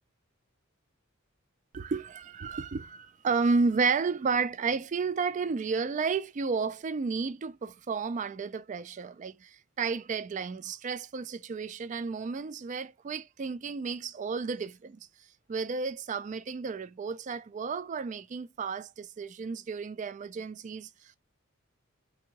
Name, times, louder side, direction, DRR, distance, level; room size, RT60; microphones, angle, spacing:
voice 1, 1.7-15.0 15.5-21.2, right 4 dB, 35° right, 0.3 m, -32 dB
3.7 x 2.7 x 2.8 m
head